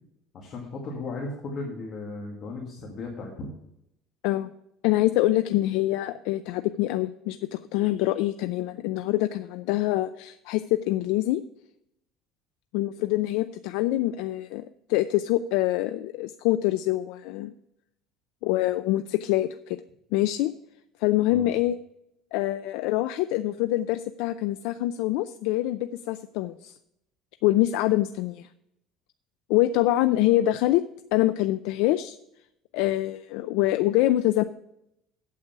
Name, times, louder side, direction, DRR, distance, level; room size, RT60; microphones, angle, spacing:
voice 1, 0.3-3.5 21.3-21.5, left 3 dB, 40° left, -1 dB, 2.0 m, -36 dB
voice 2, 4.8-11.4 12.7-14.6 14.9-17.5 18.4-19.8 20.1-20.5 21.0-21.8 22.3-26.7 27.4-28.5 29.5-30.8 31.1-32.2 32.7-34.4, left 15 dB, 80° left, 11 dB, 0.4 m, -25 dB
8.6 x 8.2 x 5.9 m, 0.80 s
cardioid pair, 160°, 0 cm